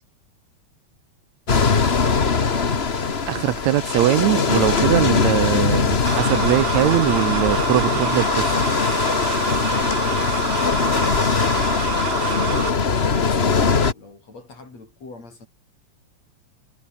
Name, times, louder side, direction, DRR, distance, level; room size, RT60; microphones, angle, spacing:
sound 1, 1.5-13.9, left 5 dB, 40° left, 0.9 m, -21 dB
voice 1, 3.3-8.5, right 14 dB, 75° right, 2.0 m, -21 dB
sound 2, 6.1-12.7, right 5 dB, 55° right, 4.4 m, -28 dB
voice 2, 13.0-15.5, left 3 dB, 60° left, 8.7 m, -42 dB
omnidirectional pair, 3.4 m